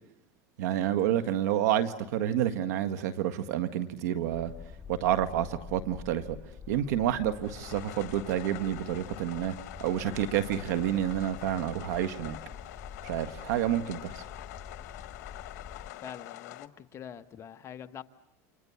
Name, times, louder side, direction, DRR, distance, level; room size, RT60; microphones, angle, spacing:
voice 1, 0.6-4.5 4.9-6.4 6.7-9.6 9.8-12.4 13.0-14.2, right 11 dB, 85° right, 11 dB, 1.8 m, -29 dB
Boat Water vehicle, 4.3-15.9, left 6 dB, 15° left, 2.0 m, -47 dB
sound 1, 7.4-16.7, left 16 dB, 75° left, 1.3 m, -45 dB
voice 2, 16.0-18.0, left 9 dB, 30° left, 9 dB, 1.2 m, -44 dB
29.0 x 26.0 x 7.2 m, 0.90 s
supercardioid pair, 130°, 9 cm